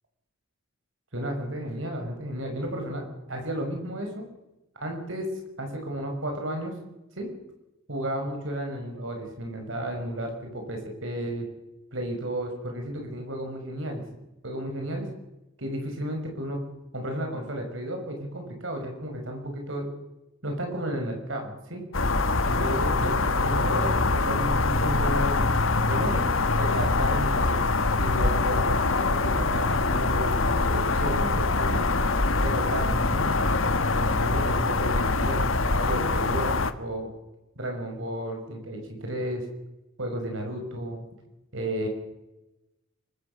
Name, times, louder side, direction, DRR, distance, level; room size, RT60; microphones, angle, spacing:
voice 1, 1.1-4.3 4.8-5.3 5.6-6.7 7.2-7.3 7.9-11.5 11.9-14.0 14.4-15.1 15.6-16.6 16.9-19.9 20.4-21.8 22.4-26.3 26.6-27.6 28.0-31.9 32.4-33.3 33.9-35.4 35.8-37.1 37.6-39.5 40.0-41.0 41.5-41.9, right 1 dB, 70° right, 3 dB, 5.7 m, -33 dB
sound 1, 21.9-36.7, left 3 dB, 75° left, 1.5 m, -24 dB
24.5 x 23.5 x 6.8 m, 0.97 s
head